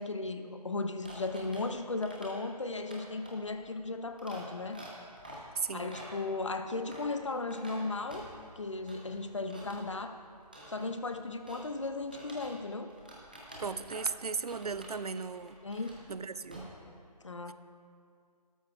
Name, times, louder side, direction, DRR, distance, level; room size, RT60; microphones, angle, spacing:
voice 1, 0.0-4.8 5.7-8.3 8.6-10.2 10.7-12.9 15.6-16.1 17.2-17.5, left 3 dB, 45° left, 8 dB, 0.7 m, -36 dB
sound 1, 1.0-12.6 12.9-14.1 14.5-16.2 16.4-16.6, right 1 dB, 15° right, 0.7 m, -49 dB
voice 2, 5.6-5.9 13.6-15.6 16.1-16.6 17.5-17.6, right 5 dB, 65° right, 14 dB, 0.5 m, -36 dB
17.0 x 13.0 x 2.4 m, 2.3 s
hypercardioid pair, 180°, 21 cm